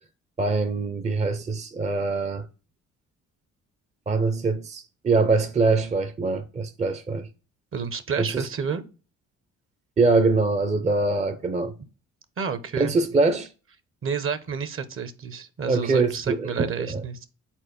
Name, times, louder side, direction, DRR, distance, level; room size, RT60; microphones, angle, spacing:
voice 1, 0.4-2.5 4.1-7.3 8.2-8.4 10.0-11.7 12.8-13.5 15.7-17.0, right 3 dB, 25° right, 0.6 m, -23 dB
voice 2, 7.7-8.8 12.4-12.9 14.0-17.3, right 6 dB, 45° right, 0.9 m, -30 dB
4.5 x 4.1 x 5.2 m
cardioid pair, 90°, 30 cm